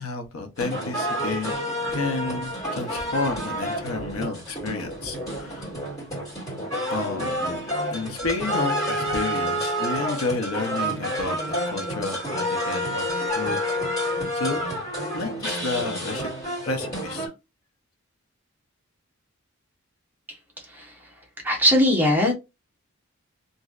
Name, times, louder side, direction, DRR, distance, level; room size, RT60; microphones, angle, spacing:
voice 1, 0.0-1.5 1.9-5.7 6.9-7.6 7.9-14.0 14.3-14.6 15.1-16.3 16.6-17.3, left 3 dB, 90° left, 0.7 m, -31 dB
sound 1, 0.6-17.3, equal, 15° left, 1.9 m, -29 dB
voice 2, 21.4-22.3, equal, 10° right, 0.9 m, -20 dB
3.0 x 2.6 x 2.4 m
head